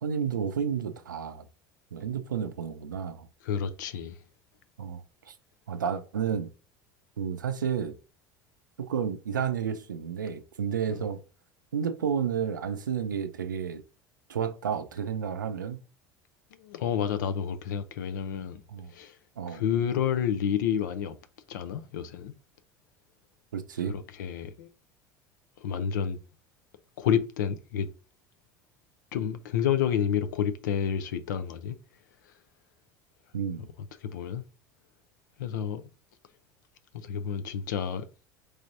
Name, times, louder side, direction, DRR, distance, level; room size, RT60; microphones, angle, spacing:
voice 1, 0.0-1.4 1.9-3.3 4.8-5.3 5.7-6.5 7.2-7.9 8.8-11.2 11.7-13.8 14.3-15.8 18.7-18.9 19.4-19.6 23.5-24.0 33.3-33.7, right 7 dB, 90° right, 0.4 m, -31 dB
voice 2, 3.4-4.2 16.5-18.6 18.9-19.2 19.5-21.2 21.5-22.3 23.9-24.7 25.6-26.2 27.0-27.9 29.1-31.8 34.0-34.4 35.4-35.8 37.0-38.1, left 8 dB, 75° left, 0.5 m, -29 dB
4.6 x 3.1 x 2.6 m
hypercardioid pair, 75°, 10 cm